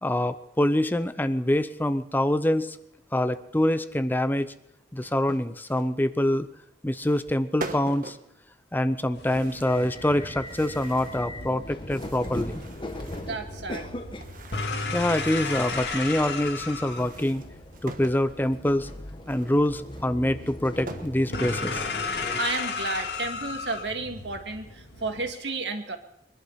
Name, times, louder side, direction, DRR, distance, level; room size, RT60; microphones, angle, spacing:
voice 1, 0.0-2.8 3.1-4.5 4.9-6.5 6.8-8.2 8.7-12.7 14.9-17.4 17.8-18.9 19.3-21.8, left 1 dB, 10° left, 12 dB, 0.6 m, -25 dB
sound 1, 5.0-5.9 6.9-7.3 7.6-8.3 9.2-10.1 10.4-11.3 11.8-13.4 14.1-16.1 16.8-18.2 19.2-21.2 21.7-21.8 22.3-23.1, right 2 dB, 50° right, 1.3 m, -43 dB
sound 2, 9.1-25.3, left 4 dB, 70° left, 2.0 m, -36 dB
sound 3, 9.6-22.4, left 1 dB, 30° left, 1.3 m, -40 dB
voice 2, 13.2-13.9 22.4-26.0, right 3 dB, 90° right, 5 dB, 2.0 m, -32 dB
22.5 x 11.5 x 5.7 m, 0.80 s
head